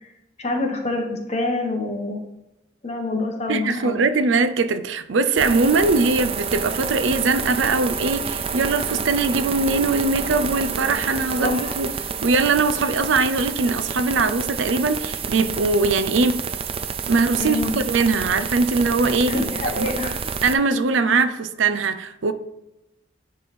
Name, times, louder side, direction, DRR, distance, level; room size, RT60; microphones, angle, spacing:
voice 1, 0.4-2.2 2.8-4.0 11.4-11.7 17.4-17.7 19.3-20.2, left 2 dB, 35° left, 1.2 m, -26 dB
voice 2, 3.5-11.9 12.2-16.4 17.1-19.4 19.8-19.9 20.4-22.3, right 3 dB, 90° right, 0.5 m, -21 dB
sound 1, 5.4-20.6, right 6 dB, 30° right, 0.4 m, -29 dB
10.0 x 3.4 x 4.3 m
head